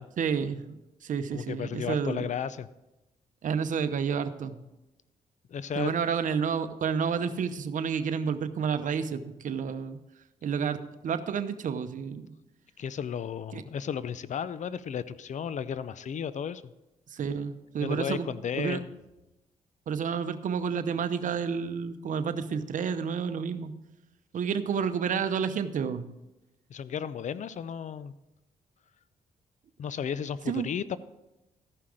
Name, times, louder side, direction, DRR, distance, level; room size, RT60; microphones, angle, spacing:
voice 1, 0.2-2.2 3.4-4.6 5.8-10.0 10.4-10.8 11.0-12.3 13.5-13.6 17.1-18.8 19.9-23.7 24.3-26.0 30.5-30.7, right 6 dB, 60° right, 10 dB, 0.8 m, -30 dB
voice 2, 1.3-2.7 5.5-6.0 12.8-16.6 17.8-18.9 26.7-28.1 29.8-31.0, left 8 dB, 55° left, 16 dB, 0.5 m, -34 dB
14.0 x 5.7 x 4.9 m, 0.96 s
cardioid pair, 75°, 15 cm